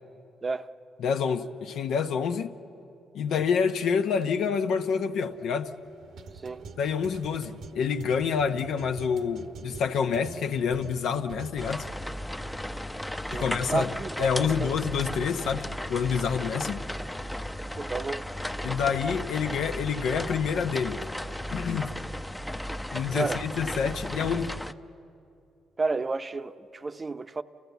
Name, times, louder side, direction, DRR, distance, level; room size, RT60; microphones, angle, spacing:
voice 1, 1.0-2.5 3.1-5.7 6.8-11.9 13.3-13.9 14.2-16.8 18.6-21.0 21.5-21.9 22.9-24.5, left 6 dB, 75° left, 0.8 m, -27 dB
sound 1, 5.3-11.5, right 4 dB, 80° right, 1.1 m, -45 dB
sound 2, 11.6-24.7, left 1 dB, 5° left, 0.6 m, -35 dB
voice 2, 13.3-14.7 17.8-18.3 23.1-23.4 25.8-27.4, right 3 dB, 30° right, 0.7 m, -31 dB
30.0 x 15.0 x 8.2 m
cardioid pair, 90°, 0 cm